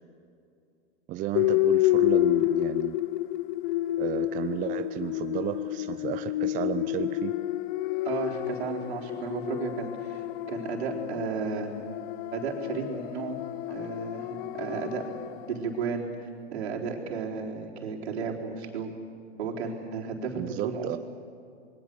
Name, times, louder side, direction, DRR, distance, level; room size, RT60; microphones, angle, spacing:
voice 1, 1.1-3.0 4.0-7.3 20.4-21.0, right 13 dB, 25° right, 11 dB, 0.6 m, -33 dB
sound 1, 1.3-15.5, left 16 dB, 45° left, 0.6 m, -29 dB
voice 2, 8.0-11.7 12.3-13.4 13.7-15.1 15.5-16.1 16.5-18.9 19.4-21.0, right 5 dB, 65° right, -1 dB, 4.1 m, -33 dB
27.0 x 21.5 x 7.0 m, 2.5 s
hypercardioid pair, 110°, 34 cm